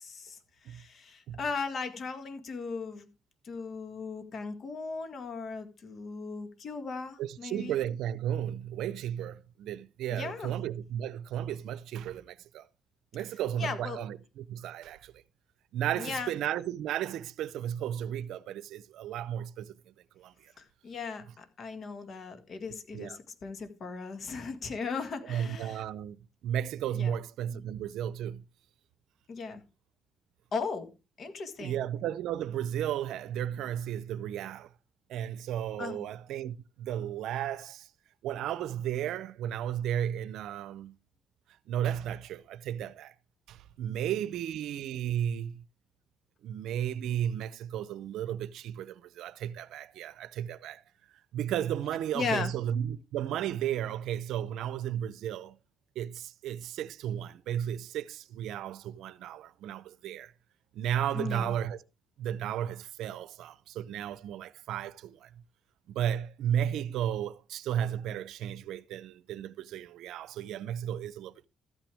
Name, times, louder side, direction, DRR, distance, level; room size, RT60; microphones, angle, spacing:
voice 1, 0.0-3.1 3.4-7.8 10.1-10.5 13.6-14.0 16.0-16.3 20.6-25.8 26.9-27.1 27.5-27.6 29.3-29.6 30.5-30.9 31.2-31.8 35.8-36.1 52.1-52.5 61.1-61.5, left 4 dB, 55° left, 1.8 m, -37 dB
voice 2, 7.2-12.7 13.1-15.2 15.7-19.7 20.2-20.5 22.9-23.2 25.2-28.4 31.6-34.7 35.1-37.9 38.2-40.9 41.7-43.1 43.5-45.6 46.4-50.8 51.3-55.6 56.0-60.3 60.7-61.8 62.2-65.3 65.9-71.5, right 10 dB, 85° right, 0.6 m, -34 dB
13.5 x 9.0 x 3.4 m
cardioid pair, 90°, 0 cm